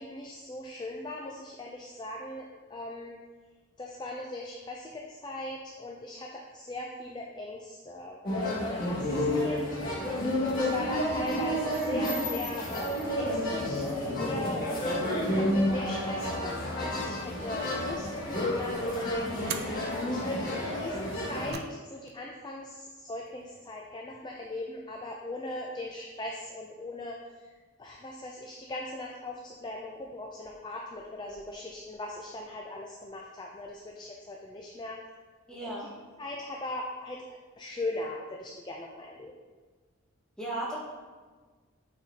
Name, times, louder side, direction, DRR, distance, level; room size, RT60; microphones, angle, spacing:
voice 1, 0.0-3.2 3.8-14.9 15.3-20.4 20.7-27.5 27.8-35.0 35.6-35.7 36.2-37.2 37.6-39.3, left 1 dB, 20° left, 0 dB, 0.4 m, -39 dB
sound 1, 8.2-21.5, left 1 dB, 45° left, 1.7 m, -30 dB
sound 2, 19.4-19.8 21.1-21.8 22.1-22.2 23.3-23.8, right 7 dB, 50° right, 0.4 m, -41 dB
voice 2, 19.9-20.2 35.5-35.9 40.4-40.8, right 1 dB, 5° left, -7 dB, 1.5 m, -36 dB
8.8 x 4.1 x 2.8 m, 1.4 s
head